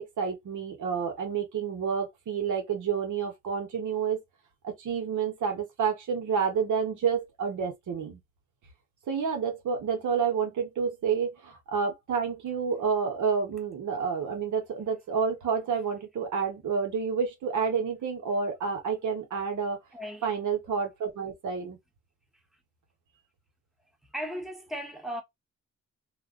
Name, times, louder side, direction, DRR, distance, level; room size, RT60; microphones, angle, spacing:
voice 1, 0.0-4.2 4.6-8.2 9.1-19.8 20.2-21.8, right 6 dB, 85° right, 1.4 m, -29 dB
voice 2, 19.9-20.3 24.1-25.2, equal, ahead, 1.3 m, -36 dB
2.8 x 2.5 x 3.8 m
cardioid pair, 65°, 29 cm